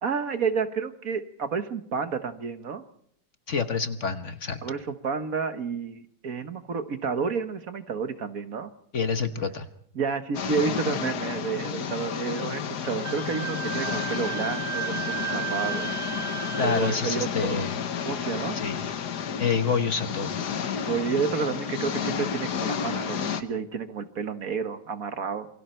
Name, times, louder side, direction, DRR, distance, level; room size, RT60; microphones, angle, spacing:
voice 1, 0.0-2.8 4.6-8.7 9.9-15.9 16.6-17.7 18.0-18.6 20.8-25.5, right 5 dB, 55° right, 9 dB, 1.7 m, -30 dB
voice 2, 3.5-4.6 8.9-9.7 16.6-17.8 18.5-18.9 19.4-20.3, left 5 dB, 50° left, 9 dB, 1.3 m, -27 dB
sound 1, 10.3-23.4, left 7 dB, 70° left, 1.7 m, -31 dB
Wind instrument woodwind instrument, 13.0-17.0, right 9 dB, 85° right, 2.7 m, -33 dB
27.5 x 23.0 x 4.5 m, 0.68 s
omnidirectional pair, 1.8 m